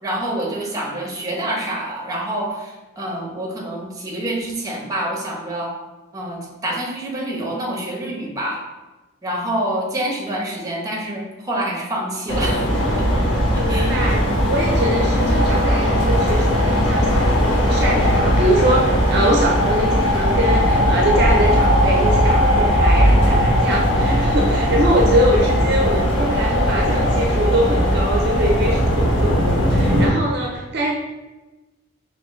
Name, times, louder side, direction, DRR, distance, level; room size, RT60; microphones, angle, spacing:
voice 1, 0.0-5.7 6.1-8.6 9.2-12.7 13.0-13.1 13.5-13.9, right 1 dB, 15° right, -2 dB, 0.9 m, -27 dB
sound 1, 12.3-30.1, equal, 65° left, 1.4 m, -18 dB
voice 2, 13.6-30.9, right 1 dB, 55° right, -1 dB, 0.6 m, -23 dB
4.9 x 3.0 x 3.6 m, 1.1 s
head